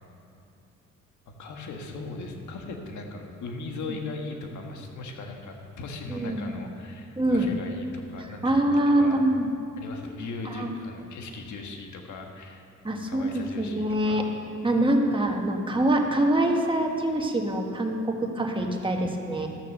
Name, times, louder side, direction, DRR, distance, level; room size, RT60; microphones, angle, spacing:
voice 1, 1.3-9.2 9.8-12.6 13.1-14.2, left 3 dB, 75° left, 2 dB, 1.6 m, -38 dB
voice 2, 6.1-6.6 7.2-7.5 8.4-9.5 10.5-10.7 12.8-14.2 14.6-19.5, right 1 dB, 15° right, 2 dB, 1.5 m, -24 dB
13.5 x 6.5 x 6.6 m, 2.5 s
cardioid pair, 90°, 30 cm